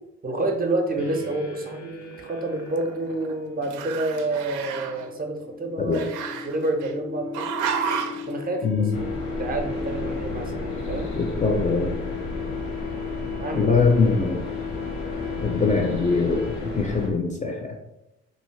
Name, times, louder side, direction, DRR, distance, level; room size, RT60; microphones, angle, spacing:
voice 1, 0.2-7.5 8.3-11.1 13.4-13.7, right 2 dB, 30° right, 4 dB, 0.5 m, -29 dB
sound 1, 1.0-16.9, left 6 dB, 65° left, 0.8 m, -36 dB
Growling, 2.1-3.4 3.6-5.1 5.9-6.9 7.3-8.3, right 7 dB, 80° right, 0.4 m, -31 dB
voice 2, 8.6-8.9 11.2-11.9 13.5-14.4 15.4-17.7, left 4 dB, 25° left, 3 dB, 0.4 m, -22 dB
sound 2, 8.9-17.1, left 1 dB, 85° left, 1.2 m, -33 dB
2.8 x 2.7 x 3.1 m, 0.92 s
cardioid pair, 90°, 30 cm